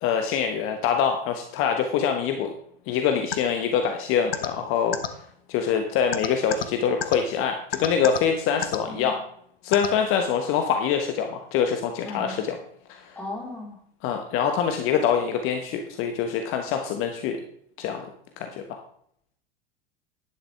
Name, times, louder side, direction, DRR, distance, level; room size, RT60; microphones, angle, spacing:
voice 1, 0.0-2.5 2.9-5.0 5.5-9.2 9.6-12.6 12.9-13.2 14.0-17.4 17.8-18.1 18.4-18.8, left 7 dB, 45° left, 5 dB, 1.3 m, -25 dB
sound 1, 3.3-3.4 4.3-4.5 4.9-5.1 6.1-6.6 7.0-7.1 7.7-8.2 8.6-8.8 9.7-9.9, left 8 dB, 80° left, 1.0 m, -26 dB
voice 2, 12.1-12.4 13.1-13.8, left 1 dB, 5° left, -2 dB, 4.5 m, -36 dB
11.5 x 9.8 x 3.5 m, 0.67 s
figure-of-eight pair, 80°, 29 cm